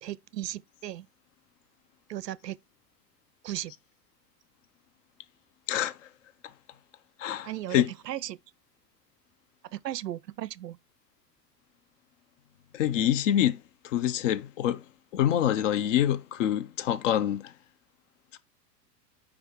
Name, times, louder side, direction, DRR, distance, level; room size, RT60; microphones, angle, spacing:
voice 1, 0.0-1.1 2.1-2.6 3.4-3.7 7.4-8.4 9.7-10.8, right 13 dB, 75° right, 0.5 m, -36 dB
voice 2, 7.2-7.9 12.7-14.8 15.1-17.5 18.3-18.4, left 11 dB, 50° left, 0.8 m, -26 dB
5.1 x 4.9 x 5.3 m
figure-of-eight pair, 90°, 50 cm